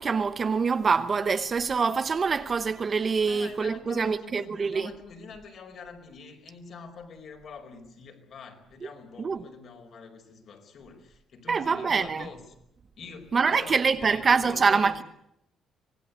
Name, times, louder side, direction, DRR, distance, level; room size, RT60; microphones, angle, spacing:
voice 1, 0.0-4.9 9.2-9.4 11.5-12.3 13.3-15.0, right 5 dB, 30° right, 0.9 m, -25 dB
voice 2, 3.2-12.4 13.0-15.0, left 5 dB, 45° left, 5.0 m, -45 dB
25.0 x 20.0 x 8.2 m
cardioid pair, 170°, 0 cm